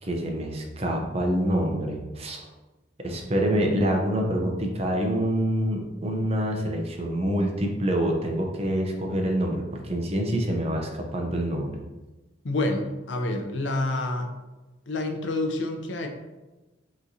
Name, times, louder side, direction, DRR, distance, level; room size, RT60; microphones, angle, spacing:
voice 1, 0.0-2.4 3.0-11.8, right 1 dB, 35° right, 2 dB, 0.7 m, -26 dB
voice 2, 12.4-14.3 14.9-16.1, left 2 dB, 80° left, 5 dB, 0.6 m, -28 dB
6.1 x 3.1 x 2.8 m, 1.1 s
head